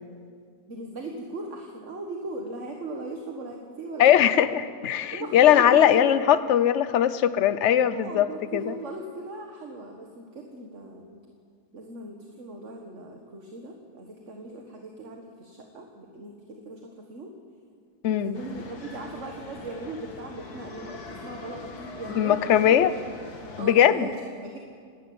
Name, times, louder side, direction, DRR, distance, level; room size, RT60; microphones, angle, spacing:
voice 1, 0.7-4.5 5.1-6.4 7.9-11.2 11.7-17.3 18.1-22.8 23.6-24.6, right 2 dB, 50° right, 2 dB, 1.9 m, -38 dB
voice 2, 4.0-8.7 18.0-18.4 22.1-22.9 23.6-24.1, left 10 dB, 55° left, 13 dB, 1.0 m, -20 dB
sound 1, 18.3-23.7, left 3 dB, 70° left, 2.4 m, -42 dB
26.0 x 12.0 x 9.5 m, 2.2 s
omnidirectional pair, 1.7 m